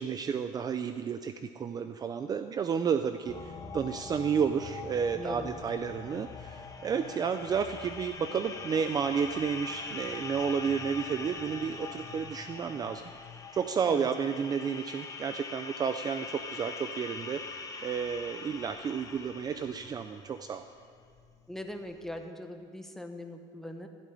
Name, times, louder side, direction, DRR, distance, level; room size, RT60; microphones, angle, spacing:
voice 1, 0.0-13.1 13.5-20.7, right 6 dB, 30° right, 9 dB, 0.5 m, -31 dB
sound 1, 3.3-22.2, left 4 dB, 25° left, 1.1 m, -43 dB
voice 2, 5.1-5.5 13.8-14.1 21.5-23.9, left 1 dB, 5° left, 5 dB, 1.2 m, -41 dB
14.5 x 8.5 x 9.9 m, 2.1 s
cardioid pair, 145°, 14 cm